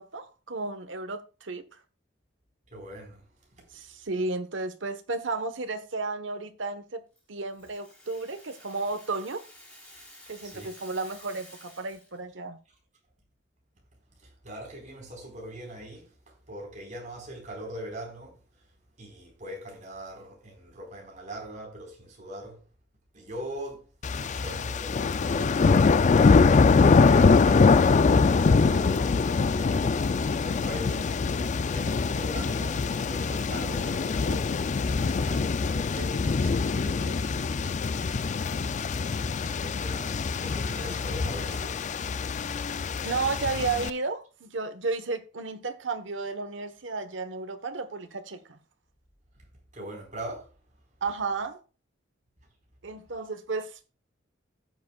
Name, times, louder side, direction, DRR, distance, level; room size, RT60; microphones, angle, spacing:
voice 1, 0.0-1.6 3.7-9.4 10.3-12.6 30.9-31.1 43.0-48.6 51.0-51.6 52.8-53.9, right 3 dB, 75° right, 1.2 m, -33 dB
voice 2, 2.7-3.7 10.4-10.7 14.2-18.7 19.0-22.6 23.1-23.9 24.2-39.1 39.4-42.6 49.3-49.5 49.7-50.6, right 1 dB, 40° right, 4.4 m, -42 dB
Rattle (instrument), 7.2-12.2, left 1 dB, 5° left, 4.9 m, -52 dB
sound 1, 24.0-43.9, left 4 dB, 40° left, 0.4 m, -24 dB
15.5 x 7.5 x 2.3 m
head